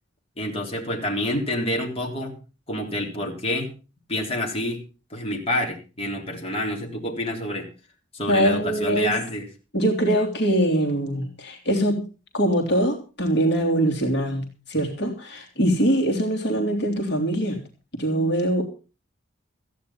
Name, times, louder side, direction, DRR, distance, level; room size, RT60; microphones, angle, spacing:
voice 1, 0.4-2.4 2.7-3.7 4.1-4.8 5.1-7.7 8.1-9.4, left 1 dB, 30° left, 0 dB, 3.4 m, -27 dB
voice 2, 8.3-9.2 9.7-12.0 12.3-17.6 18.0-18.7, right 1 dB, 60° left, 3 dB, 3.0 m, -23 dB
15.0 x 10.0 x 5.7 m, 0.34 s
head